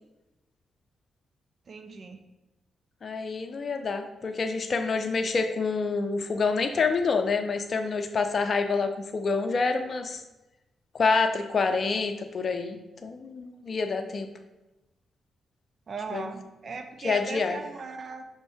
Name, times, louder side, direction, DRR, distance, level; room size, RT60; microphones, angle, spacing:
voice 1, 1.7-2.2 15.9-18.2, right 4 dB, 55° right, 6 dB, 0.5 m, -38 dB
voice 2, 3.0-10.2 10.9-14.3 16.1-16.3 17.0-17.6, left 4 dB, 55° left, 7 dB, 0.5 m, -27 dB
5.3 x 2.6 x 3.5 m, 1.0 s
hypercardioid pair, 45°, 0 cm